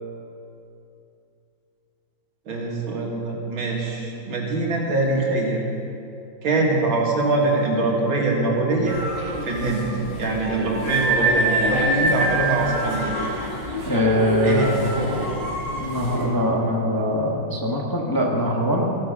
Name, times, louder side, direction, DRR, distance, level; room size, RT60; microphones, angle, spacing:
voice 1, 2.5-5.6 6.4-9.0 9.4-9.9 10.2-13.1 14.4-14.7, right 2 dB, 80° right, -1 dB, 2.9 m, -23 dB
sound 1, 8.9-16.3, right 1 dB, 65° right, 4.3 m, -25 dB
voice 2, 13.8-14.8 15.8-18.9, equal, 10° left, -2 dB, 1.2 m, -22 dB
16.0 x 10.0 x 6.8 m, 2.7 s
omnidirectional pair, 2.2 m